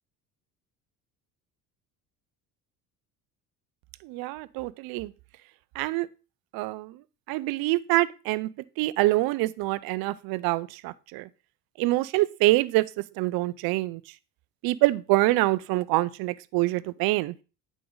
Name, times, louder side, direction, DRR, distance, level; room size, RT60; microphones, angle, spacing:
voice 1, 4.0-5.1 5.8-6.1 6.5-7.0 7.3-8.5 8.8-11.3 11.8-14.0 14.6-17.4, right 19 dB, 50° right, 0.5 m, -25 dB
8.5 x 5.1 x 3.8 m
hypercardioid pair, 60°, 49 cm